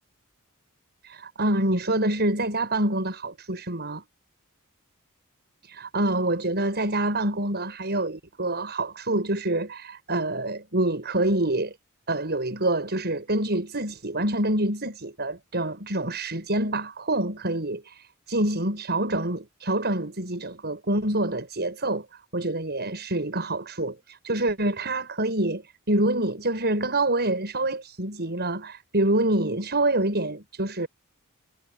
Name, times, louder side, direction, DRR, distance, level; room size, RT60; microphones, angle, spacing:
voice 1, 1.0-4.0 5.6-11.7 12.1-22.1 22.3-25.6 25.9-30.9, right 1 dB, 50° right, 7.4 m, -26 dB
head